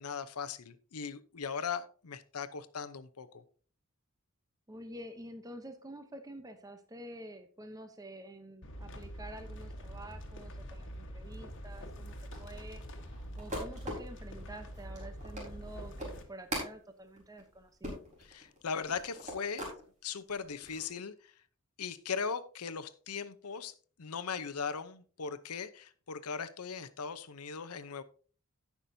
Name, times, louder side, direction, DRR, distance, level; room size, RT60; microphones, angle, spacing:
voice 1, 0.0-3.4 18.2-19.6 20.0-21.1 21.8-28.0, left 6 dB, 90° left, 12 dB, 0.8 m, -39 dB
voice 2, 4.7-12.8 13.4-18.0, right 1 dB, 15° right, 7 dB, 0.8 m, -48 dB
sound 1, 8.6-16.2, equal, 55° left, 1.5 m, -45 dB
sound 2, 12.3-19.8 20.3-20.9, equal, 35° right, 4.3 m, -42 dB
17.0 x 6.0 x 2.7 m, 0.40 s
head